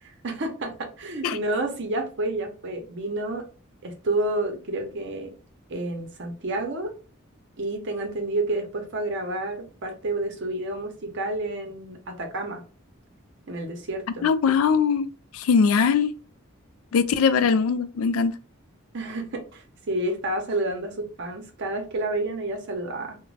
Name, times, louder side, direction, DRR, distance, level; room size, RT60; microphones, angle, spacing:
voice 1, 0.0-3.5 3.8-5.3 5.7-7.0 7.6-12.6 13.5-14.3 18.9-23.2, right 2 dB, 55° right, 0.7 m, -30 dB
voice 2, 14.2-16.1 16.9-18.4, left 6 dB, 75° left, 0.3 m, -21 dB
2.5 x 2.1 x 3.2 m
head